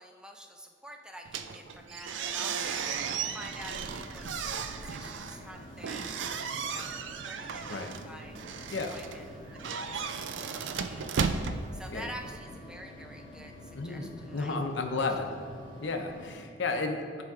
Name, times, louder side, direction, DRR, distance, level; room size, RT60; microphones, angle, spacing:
voice 1, 0.0-6.1 6.6-8.4 8.9-9.6 9.8-11.2 11.7-14.6 16.7-16.8, equal, 5° right, 3 dB, 0.5 m, -48 dB
sound 1, 1.2-12.4, right 6 dB, 85° right, 0.4 m, -35 dB
sound 2, 2.6-16.4, left 1 dB, 25° left, 1.3 m, -48 dB
voice 2, 7.6-8.0 8.7-9.0 11.9-12.1 13.3-15.3 15.8-17.2, left 3 dB, 80° left, 4 dB, 0.7 m, -33 dB
10.0 x 3.5 x 4.8 m, 2.1 s
head